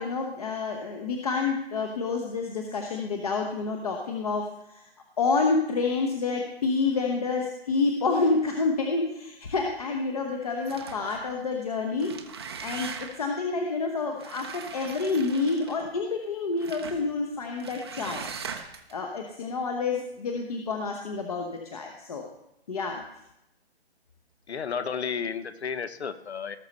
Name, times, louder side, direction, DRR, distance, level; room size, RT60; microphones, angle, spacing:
voice 1, 0.0-4.9 5.2-12.1 12.6-18.3 18.9-22.3 22.7-23.0, left 4 dB, 35° left, 2 dB, 1.0 m, -28 dB
sound 1, 10.6-11.3 11.9-13.3 14.2-15.9 16.6-17.0 17.6-18.9, right 6 dB, 25° right, 0.7 m, -40 dB
voice 2, 24.5-26.6, left 6 dB, 80° left, 12 dB, 1.2 m, -32 dB
18.0 x 6.5 x 4.2 m, 0.84 s
hypercardioid pair, 170°, 32 cm